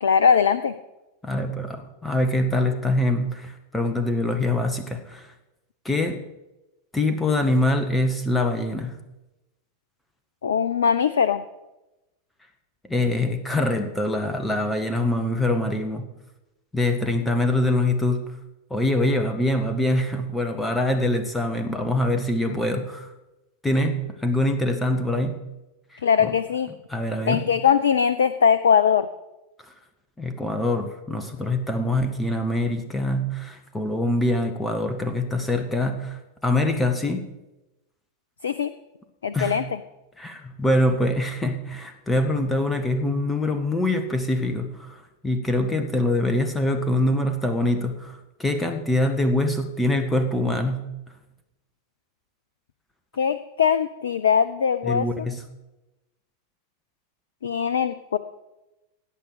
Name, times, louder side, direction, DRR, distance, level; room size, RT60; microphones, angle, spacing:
voice 1, 0.0-0.7 10.4-11.4 26.0-26.7 27.3-29.1 38.4-38.7 39.2-39.8 53.2-55.3 57.4-58.2, left 7 dB, 65° left, 14 dB, 0.6 m, -21 dB
voice 2, 1.2-5.3 5.8-6.2 6.9-9.0 12.8-16.1 16.7-18.2 18.7-23.1 23.6-25.4 25.9-26.3 26.9-27.4 30.2-37.2 39.3-39.6 40.2-50.8 54.8-55.4, left 1 dB, 10° left, 7 dB, 1.5 m, -24 dB
17.5 x 8.6 x 6.7 m, 0.99 s
figure-of-eight pair, 90°, 0 cm